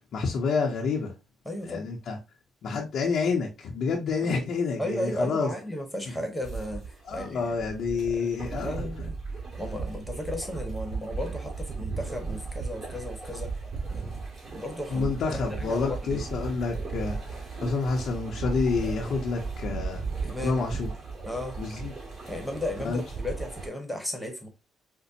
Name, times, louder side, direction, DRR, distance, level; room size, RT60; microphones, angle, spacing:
voice 1, 0.1-1.1 1.6-2.2 2.6-5.5 7.1-8.7 14.9-20.0 20.4-20.9 21.6-21.9 22.8-23.0, left 4 dB, 70° left, 0.7 m, -28 dB
voice 2, 1.4-1.9 4.2-4.4 4.8-9.1 9.6-13.5 13.9-14.1 14.5-15.1 15.5-16.2 20.2-20.7 21.3-21.6 22.3-24.5, left 1 dB, 5° left, 1.1 m, -35 dB
sound 1, 6.4-23.7, right 4 dB, 40° right, 2.2 m, -36 dB
5.1 x 2.1 x 2.6 m
cardioid pair, 90°, 0 cm